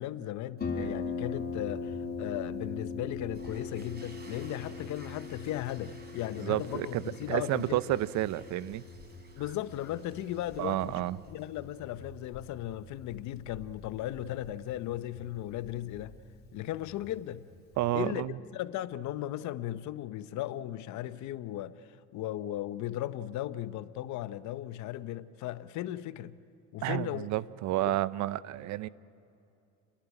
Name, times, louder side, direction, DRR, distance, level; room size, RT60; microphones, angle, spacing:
voice 1, 0.0-7.8 9.4-16.1 16.5-17.4 17.9-26.3 26.7-27.3 27.9-28.0, left 13 dB, 70° left, 0.8 m, -37 dB
Harp, 0.6-18.1, left 4 dB, 30° left, 3.0 m, -42 dB
sound 1, 3.3-11.7, right 2 dB, 35° right, 3.9 m, -56 dB
voice 2, 6.4-7.0 7.3-8.8 10.6-11.2 17.8-18.4 26.8-28.9, right 15 dB, 65° right, 0.6 m, -30 dB
29.5 x 11.5 x 10.0 m
supercardioid pair, 90°, 30 cm